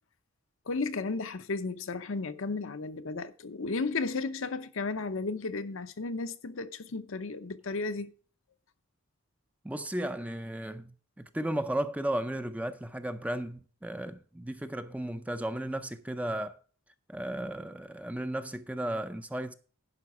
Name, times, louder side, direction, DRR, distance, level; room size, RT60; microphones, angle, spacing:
voice 1, 0.7-8.1, left 3 dB, 65° left, 0.7 m, -34 dB
voice 2, 9.6-16.6 17.1-19.5, right 1 dB, 5° right, 0.5 m, -34 dB
11.0 x 5.2 x 6.9 m
head